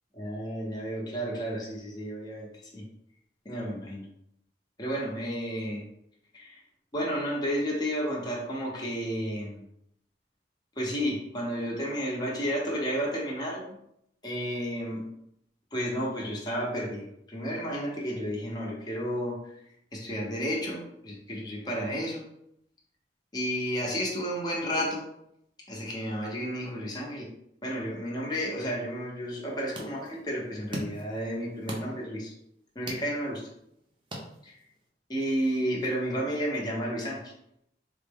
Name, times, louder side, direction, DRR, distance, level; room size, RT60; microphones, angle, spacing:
voice 1, 0.1-2.9 3.4-4.1 4.8-5.9 6.3-6.6 6.9-9.6 10.8-13.8 14.2-15.1 15.7-19.5 19.9-22.2 23.3-25.0 25.7-27.3 27.6-32.3 32.7-33.4 34.4-34.5 35.1-37.3, equal, 25° left, -3 dB, 0.7 m, -32 dB
sound 1, 29.2-34.9, equal, 30° right, 0.7 m, -43 dB
3.7 x 2.1 x 3.5 m, 0.75 s
head